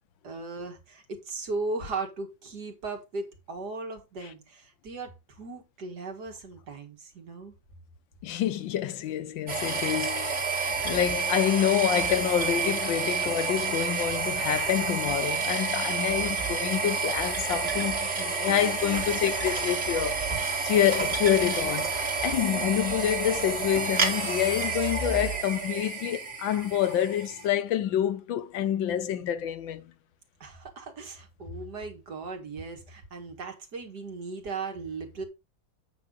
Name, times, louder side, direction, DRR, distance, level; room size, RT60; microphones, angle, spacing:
voice 1, 0.2-7.5 30.4-35.2, right 3 dB, 60° right, 2.3 m, -37 dB
voice 2, 8.2-20.2 20.6-21.9 22.2-29.9, left 10 dB, 85° left, 1.6 m, -27 dB
sound 1, 9.5-27.5, right 4 dB, 40° right, 2.3 m, -29 dB
8.7 x 5.8 x 3.8 m
omnidirectional pair, 2.0 m